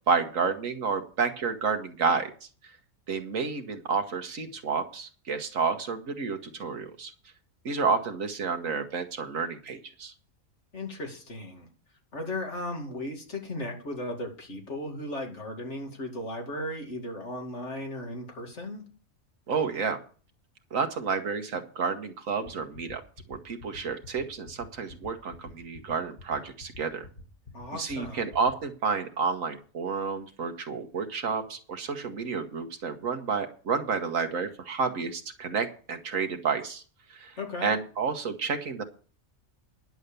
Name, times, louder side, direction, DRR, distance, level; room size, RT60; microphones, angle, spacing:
voice 1, 0.0-2.3 3.1-7.1 7.6-10.1 19.5-20.0 20.7-23.0 23.3-27.0 27.7-36.8 37.1-37.3 37.6-38.8, right 5 dB, 75° right, 6 dB, 1.6 m, -30 dB
voice 2, 10.7-11.7 12.1-18.8 27.5-28.3 37.4-37.7, left 1 dB, 55° left, 2 dB, 2.6 m, -36 dB
sound 1, 22.4-28.5, left 3 dB, 40° left, 1.9 m, -46 dB
10.5 x 7.2 x 6.7 m, 0.41 s
omnidirectional pair, 1.4 m